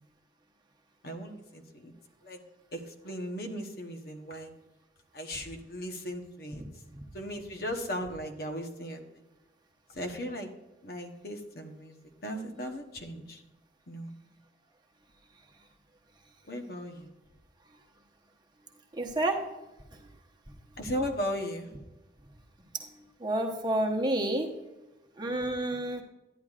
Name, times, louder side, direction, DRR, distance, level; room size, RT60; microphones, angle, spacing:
voice 1, 1.0-1.9 2.2-2.4 2.7-4.5 5.1-6.6 7.1-9.0 9.9-10.5 10.8-13.4 13.9-14.1 16.5-17.1 20.8-21.7, equal, 55° left, 4 dB, 1.0 m, -37 dB
voice 2, 18.9-19.4 22.8-22.9 23.2-24.5 25.2-26.0, right 1 dB, 25° right, 2 dB, 1.0 m, -29 dB
11.0 x 10.5 x 2.4 m, 1.1 s
head